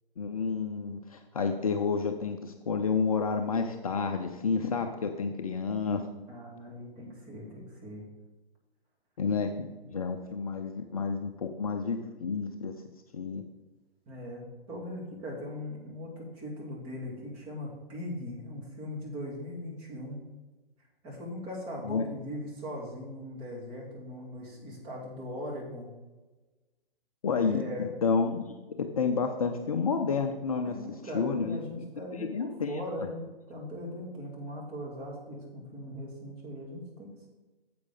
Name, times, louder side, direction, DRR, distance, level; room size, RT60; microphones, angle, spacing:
voice 1, 0.2-6.0 9.2-12.7 13.1-13.4 21.8-22.0 27.2-31.6 32.1-33.1, left 5 dB, 35° left, 5 dB, 0.6 m, -30 dB
voice 2, 6.3-8.0 14.1-20.2 21.0-25.9 27.4-27.9 30.6-37.3, left 1 dB, 20° right, -3 dB, 2.4 m, -40 dB
9.5 x 7.6 x 3.9 m, 1.2 s
figure-of-eight pair, 130°, 30 cm